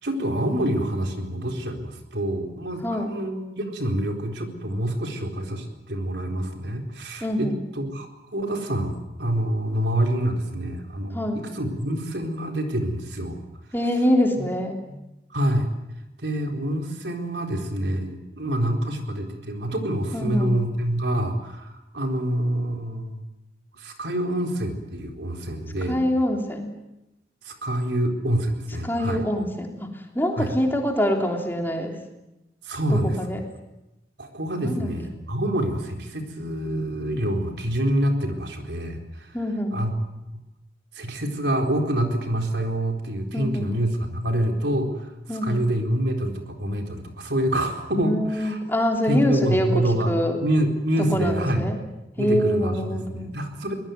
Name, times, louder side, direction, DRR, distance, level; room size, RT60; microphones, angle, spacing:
voice 1, 0.0-8.1 8.3-13.4 14.4-14.5 14.9-15.0 15.3-15.7 16.2-23.2 23.7-26.0 27.4-29.2 30.4-30.5 32.6-33.2 34.2-39.4 39.7-39.9 40.3-40.4 40.9-48.6 49.1-51.7 52.2-53.7, right 1 dB, 90° right, 4 dB, 4.1 m, -26 dB
voice 2, 2.8-3.1 7.2-7.5 11.1-11.4 13.7-14.8 20.1-20.5 25.9-26.7 28.8-32.0 32.9-33.4 34.6-34.9 39.3-39.7 43.3-43.7 45.3-45.6 48.0-50.4 51.1-51.8 52.2-53.3, equal, 10° left, 2 dB, 3.2 m, -25 dB
24.0 x 20.0 x 9.4 m, 0.94 s
head